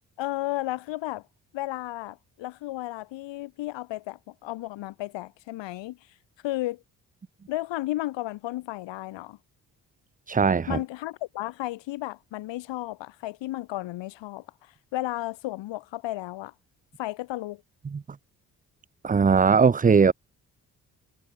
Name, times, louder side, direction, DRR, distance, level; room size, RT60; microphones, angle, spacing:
voice 1, 0.2-1.2 1.5-6.0 6.4-6.8 7.5-9.4 10.7-16.5 17.0-17.6, left 17 dB, 65° left, 2.2 m, -33 dB
voice 2, 10.3-10.8 17.9-18.0 19.0-20.1, right 5 dB, 15° right, 0.7 m, -19 dB
figure-of-eight pair, 40°, 47 cm